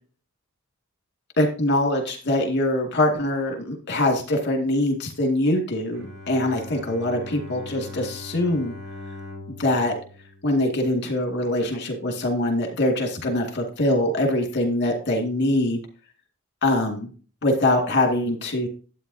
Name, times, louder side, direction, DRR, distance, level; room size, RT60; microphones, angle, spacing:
voice 1, 1.4-8.7 9.6-10.0 10.4-15.8 16.6-17.1 17.4-18.7, left 1 dB, 50° left, 2 dB, 2.3 m, -23 dB
Bowed string instrument, 5.9-11.2, left 2 dB, 60° right, 5.6 m, -41 dB
12.0 x 8.7 x 2.8 m, 0.38 s
head